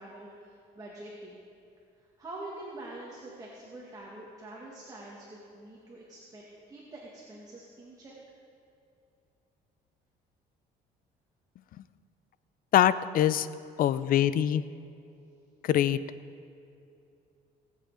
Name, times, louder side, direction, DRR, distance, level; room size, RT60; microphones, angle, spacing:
voice 1, 0.0-1.4 2.0-8.2, right 2 dB, 20° right, -4 dB, 2.2 m, -45 dB
voice 2, 12.7-13.5 13.8-14.6 15.6-16.0, left 11 dB, 55° left, 16 dB, 0.5 m, -23 dB
19.0 x 8.2 x 5.0 m, 2.6 s
cardioid pair, 110°, 17 cm